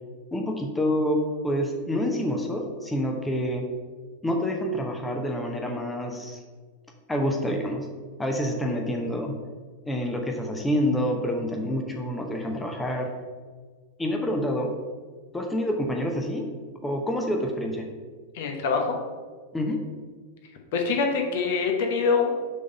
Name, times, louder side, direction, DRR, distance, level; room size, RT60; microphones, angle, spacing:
voice 1, 0.3-3.6 4.2-6.4 7.1-7.9 8.2-9.4 9.9-13.1 14.0-14.7 15.3-16.5 16.8-17.9 19.5-19.9, equal, 10° left, 2 dB, 0.8 m, -27 dB
voice 2, 18.3-19.0 20.7-22.4, left 5 dB, 55° left, 3 dB, 1.0 m, -24 dB
6.5 x 3.9 x 5.4 m, 1.5 s
figure-of-eight pair, 90°, 0 cm